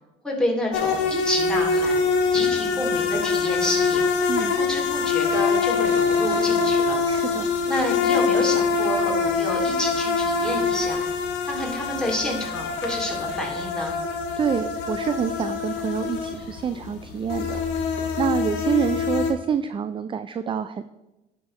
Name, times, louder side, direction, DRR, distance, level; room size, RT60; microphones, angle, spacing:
voice 1, 0.2-2.0 2.3-4.0 4.6-7.0 7.7-11.0 11.4-14.0, left 1 dB, 5° left, -2 dB, 2.6 m, -29 dB
sound 1, 0.7-19.3, left 5 dB, 75° left, 1.4 m, -24 dB
voice 2, 7.1-7.5 14.4-20.8, right 7 dB, 30° right, 12 dB, 0.3 m, -27 dB
11.0 x 5.6 x 3.1 m, 0.99 s
supercardioid pair, 90°, 19 cm